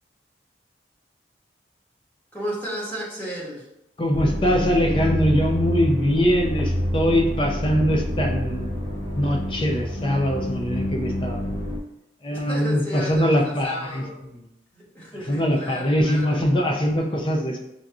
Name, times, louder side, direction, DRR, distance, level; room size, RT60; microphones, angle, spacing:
voice 1, 2.3-3.7 12.3-14.2 14.7-16.4, equal, 10° left, -6 dB, 1.1 m, -33 dB
voice 2, 4.0-8.7 9.2-11.5 12.2-14.0 15.3-17.6, equal, 30° left, 2 dB, 0.5 m, -22 dB
sound 1, 4.1-11.8, equal, 75° left, 0.8 m, -27 dB
6.1 x 2.7 x 2.4 m, 0.85 s
head